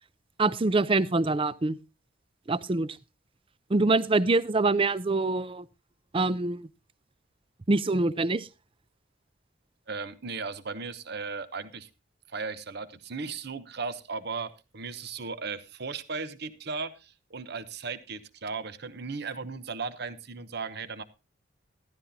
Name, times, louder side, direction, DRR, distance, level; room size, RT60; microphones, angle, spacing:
voice 1, 0.4-1.8 2.5-3.0 3.7-5.7 6.1-6.7 7.7-8.5, right 3 dB, 25° right, 18 dB, 0.5 m, -25 dB
voice 2, 9.9-11.9 12.3-21.0, right 4 dB, 55° right, 13 dB, 1.0 m, -36 dB
14.0 x 12.5 x 2.8 m, 0.27 s
head